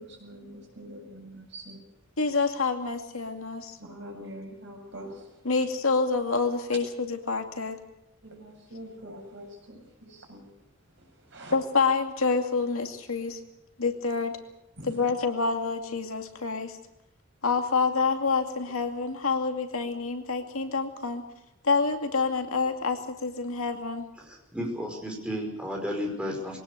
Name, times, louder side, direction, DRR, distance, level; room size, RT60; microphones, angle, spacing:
voice 1, 0.0-1.8 3.8-5.5 8.2-10.5 10.9-11.6 14.8-15.1, equal, 55° right, 2 dB, 7.9 m, -44 dB
voice 2, 2.2-3.8 5.5-7.8 11.5-13.4 13.8-14.4 14.9-16.8 17.4-21.2 21.6-24.1, left 4 dB, 80° left, 5 dB, 2.4 m, -27 dB
voice 3, 24.3-26.6, equal, 5° right, 0 dB, 5.2 m, -33 dB
22.0 x 18.0 x 8.1 m, 0.81 s
head